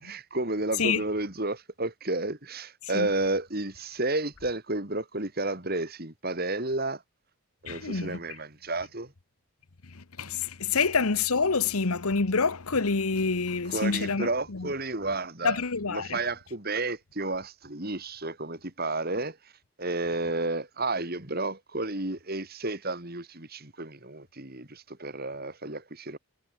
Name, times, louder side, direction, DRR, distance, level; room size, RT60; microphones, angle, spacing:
voice 1, 0.0-7.0 7.6-9.1 10.7-10.8 13.6-15.6 15.9-19.4 19.8-26.2, right 2 dB, 45° right, 3.0 m, -31 dB
voice 2, 7.7-8.2 9.9-14.7 15.4-16.2, left 4 dB, 80° left, 1.2 m, -27 dB
head